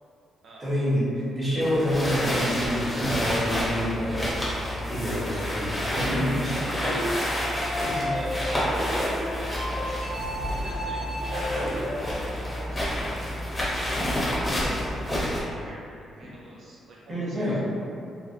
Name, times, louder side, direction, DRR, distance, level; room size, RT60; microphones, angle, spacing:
voice 1, 0.6-4.3 4.8-6.9 8.0-8.1 15.4-15.5 17.1-17.5, equal, 20° right, -10 dB, 1.3 m, -27 dB
sound 1, 1.6-15.4, equal, 15° left, 0.8 m, -30 dB
sound 2, 3.3-15.1, left 1 dB, 40° left, 0.5 m, -37 dB
sound 3, 6.8-11.9, equal, 85° right, 0.9 m, -32 dB
voice 2, 7.4-7.8 8.1-9.5 10.5-14.5 14.9-17.6, right 1 dB, 65° right, -5 dB, 0.4 m, -46 dB
3.2 x 2.3 x 2.6 m, 2.6 s
cardioid pair, 105°, 0 cm